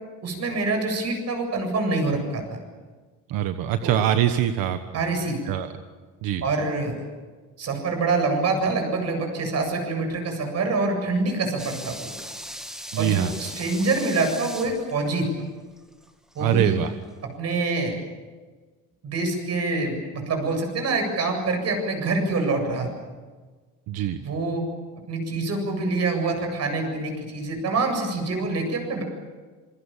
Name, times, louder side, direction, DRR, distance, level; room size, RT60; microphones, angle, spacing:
voice 1, 0.2-2.4 3.8-3.9 4.9-5.5 6.4-7.1 7.6-12.1 13.0-15.3 16.3-16.8 17.4-17.9 19.0-22.9 24.2-24.6 25.1-29.0, right 3 dB, 50° right, 4 dB, 7.9 m, -26 dB
voice 2, 3.3-4.8 5.5-5.7 6.2-6.4 12.9-13.3 16.4-16.9 23.9-24.2, right 11 dB, 90° right, 8 dB, 1.4 m, -23 dB
sound 1, 11.6-16.6 16.9-17.0, equal, ahead, 2.1 m, -39 dB
27.0 x 23.5 x 7.4 m, 1.4 s
cardioid pair, 135°, 33 cm